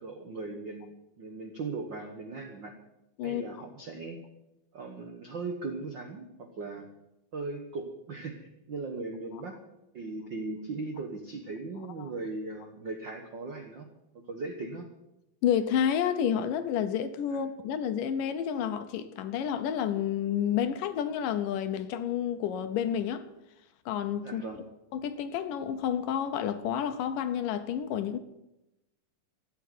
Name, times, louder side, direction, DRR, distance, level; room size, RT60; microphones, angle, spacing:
voice 1, 0.0-2.7 3.2-4.3 4.7-6.9 7.3-9.5 9.9-14.9 17.3-17.4 24.2-24.6, right 3 dB, 70° right, 1.1 m, -38 dB
voice 2, 15.4-23.3 23.9-24.4 24.9-28.2, left 9 dB, 75° left, 2.4 m, -30 dB
14.0 x 9.2 x 9.2 m
omnidirectional pair, 4.1 m